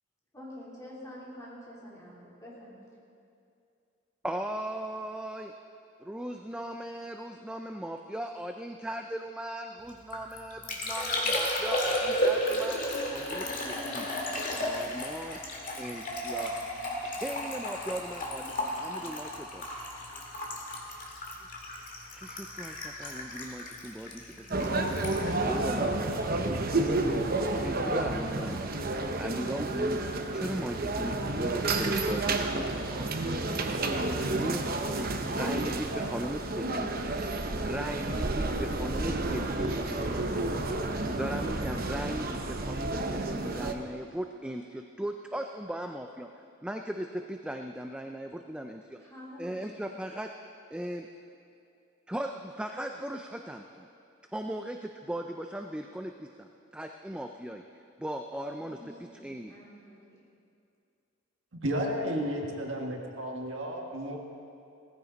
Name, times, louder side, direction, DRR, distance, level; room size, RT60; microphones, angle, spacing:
voice 1, 0.3-2.8 49.0-49.8 58.6-60.2, left 1 dB, 15° left, -6 dB, 3.5 m, -47 dB
voice 2, 4.2-5.5 6.0-12.8 13.1-14.1 14.6-15.4 15.8-16.5 17.0-19.7 22.1-25.9 26.7-27.3 27.6-28.6 29.2-33.9 34.3-36.9 37.6-40.0 41.1-49.0 49.4-50.3 50.7-51.1 52.1-53.9 54.3-59.5, right 1 dB, 5° right, 4 dB, 0.4 m, -38 dB
Liquid, 9.9-26.5 26.8-27.3, equal, 40° left, 2.0 m, -34 dB
sound 1, 24.5-43.7, right 2 dB, 45° right, 0.9 m, -30 dB
voice 3, 61.5-64.2, equal, 65° right, 1 dB, 1.6 m, -32 dB
17.5 x 15.0 x 4.0 m, 2.5 s
head